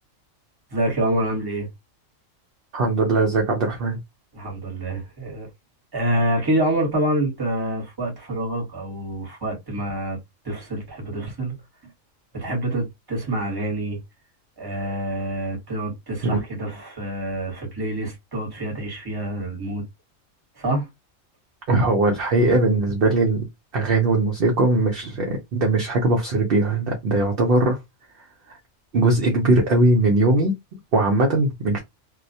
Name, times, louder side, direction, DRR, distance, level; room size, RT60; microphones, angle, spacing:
voice 1, 0.7-1.7 4.3-5.5 5.9-10.2 10.4-11.5 11.8-11.9 12.3-14.0 14.6-19.8 20.6-20.9, right 1 dB, 20° right, 0.9 m, -26 dB
voice 2, 2.7-4.0 16.2-16.4 21.7-23.5 23.7-27.8 28.5-28.6 28.9-30.5 30.9-31.8, right 2 dB, 60° right, 0.7 m, -20 dB
2.3 x 2.1 x 2.6 m
omnidirectional pair, 1.3 m